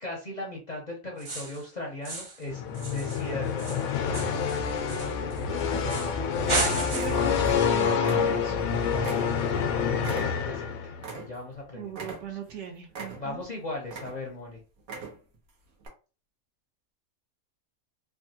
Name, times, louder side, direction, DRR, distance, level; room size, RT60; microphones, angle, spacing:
voice 1, 0.0-2.6 2.9-3.8 8.9-12.4 13.1-14.6, left 2 dB, 45° left, -1 dB, 0.6 m, -38 dB
sound 1, 1.2-1.7 2.0-2.4 2.7-5.4 5.9-6.2 6.5-7.3, right 3 dB, 50° right, 0.3 m, -33 dB
sound 2, 2.5-11.1, left 6 dB, 90° left, 1.0 m, -27 dB
sound 3, 5.4-6.1 6.4-6.6 6.9-7.7 8.0-8.7 9.0-11.6 11.9-12.6 12.9-13.5 13.8-14.4 14.8-15.4 15.8-15.9, right 4 dB, 85° right, 1.3 m, -41 dB
voice 2, 5.5-6.0 6.6-8.6 11.7-13.4, right 7 dB, 65° right, 3 dB, 0.9 m, -39 dB
3.3 x 2.2 x 2.7 m, 0.34 s
omnidirectional pair, 1.4 m